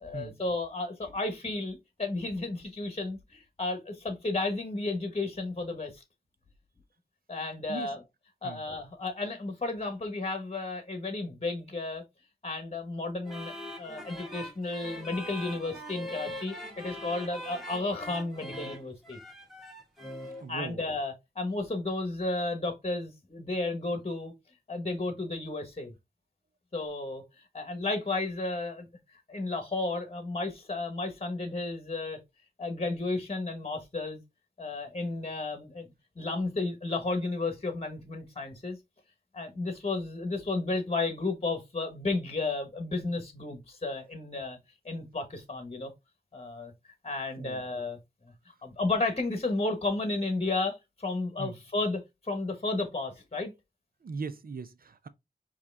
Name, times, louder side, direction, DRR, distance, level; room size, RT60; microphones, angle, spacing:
voice 1, 0.0-5.9 7.3-8.0 8.4-12.0 12.4-19.2 20.5-24.3 24.7-25.9 26.7-27.2 27.5-28.9 29.3-32.2 32.6-34.2 34.6-35.9 36.2-38.8 39.3-44.6 44.8-45.9 46.3-46.7 47.0-48.0 48.2-48.3 48.6-53.5, left 3 dB, 35° left, 1.2 m, -33 dB
sound 1, 13.2-20.5, left 1 dB, ahead, 1.8 m, -41 dB
voice 2, 20.4-20.8 47.3-47.6 51.4-51.6 54.0-55.1, right 5 dB, 55° right, 0.6 m, -39 dB
4.8 x 2.9 x 3.4 m
wide cardioid pair, 65°, 18 cm